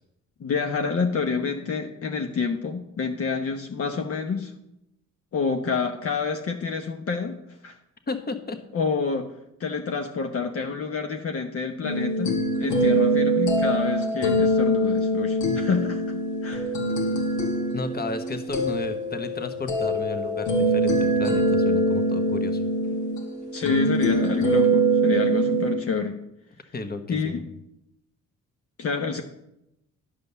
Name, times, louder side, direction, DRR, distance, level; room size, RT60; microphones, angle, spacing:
voice 1, 0.4-4.5 5.3-7.4 7.6-7.8 8.7-9.3 9.6-16.0 16.4-16.7 23.5-26.2 27.1-27.4 28.8-29.2, left 5 dB, 50° left, 4 dB, 1.0 m, -28 dB
voice 2, 8.1-8.6 17.7-22.6 26.7-27.4, left 3 dB, 30° left, 8 dB, 1.2 m, -33 dB
sound 1, 11.8-25.7, right 1 dB, 75° left, 2.0 m, -23 dB
11.5 x 5.2 x 6.8 m, 0.84 s
cardioid pair, 90°, 30 cm